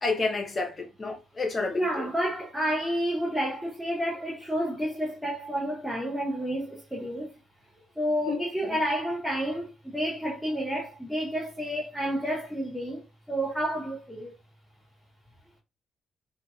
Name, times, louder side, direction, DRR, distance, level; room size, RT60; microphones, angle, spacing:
voice 1, 0.0-2.1 8.3-8.8, left 3 dB, 35° left, 0.9 m, -30 dB
voice 2, 1.7-7.4 8.0-14.3, equal, ahead, 0.9 m, -30 dB
2.8 x 2.7 x 2.3 m
figure-of-eight pair, 40°, 0 cm